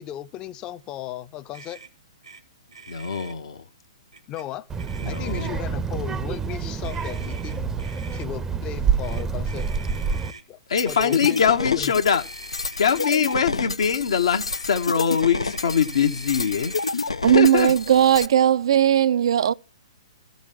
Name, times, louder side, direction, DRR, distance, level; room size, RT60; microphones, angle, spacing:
voice 1, 0.0-1.8 4.3-4.7 5.0-7.8 8.1-9.7 10.5-10.6 10.9-11.5 11.8-11.9, left 12 dB, 25° left, 0.6 m, -36 dB
Motor vehicle (road), 1.5-1.9 2.2-2.4 2.7-3.3 4.1-4.4 4.8-5.7 6.8-8.3 9.0-10.4 10.8-11.4 12.1-13.4 14.5-16.9, right 5 dB, 85° right, 2.1 m, -44 dB
voice 2, 2.9-3.6 5.0-5.6 10.7-12.2 12.8-17.7, left 7 dB, 70° left, 0.9 m, -23 dB
Child speech kid speaking, 4.7-10.3, right 6 dB, 15° right, 0.7 m, -27 dB
sound 1, 10.8-18.3, left 3 dB, 90° left, 0.6 m, -29 dB
voice 3, 17.2-19.5, right 10 dB, 60° right, 0.5 m, -18 dB
14.0 x 5.3 x 9.1 m
figure-of-eight pair, 120°, 3 cm